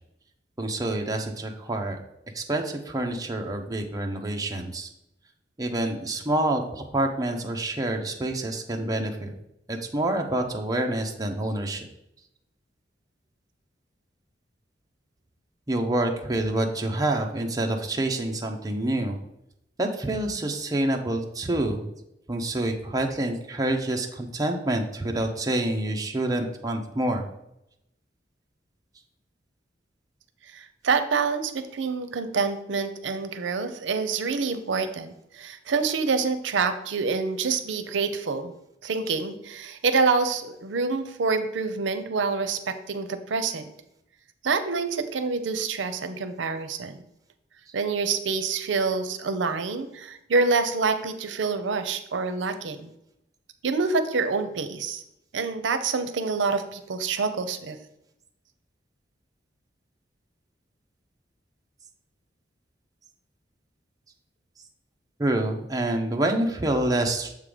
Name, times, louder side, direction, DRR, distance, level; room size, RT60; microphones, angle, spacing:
voice 1, 0.6-2.0 2.3-4.9 5.6-9.3 9.7-11.9 15.7-19.2 19.8-21.9 22.3-27.3 65.2-67.3, right 1 dB, 20° right, 2 dB, 0.6 m, -27 dB
voice 2, 30.5-38.5 38.8-43.6 44.4-47.0 47.7-52.9 53.6-55.0 55.3-57.8, right 4 dB, 85° right, 10 dB, 0.6 m, -27 dB
6.9 x 3.7 x 4.9 m, 0.82 s
head